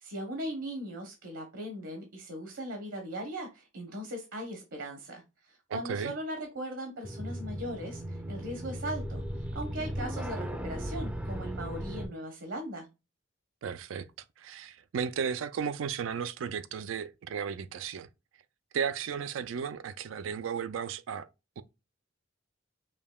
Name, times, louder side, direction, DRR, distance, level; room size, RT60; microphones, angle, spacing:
voice 1, 0.0-12.9, right 1 dB, 70° right, 0.9 m, -39 dB
voice 2, 5.7-6.1 13.6-14.1 14.4-18.1 18.7-21.3 21.6-21.7, right 7 dB, 90° right, 0.4 m, -34 dB
sound 1, 7.0-12.1, equal, 5° right, 0.4 m, -36 dB
5.1 x 2.7 x 2.2 m
head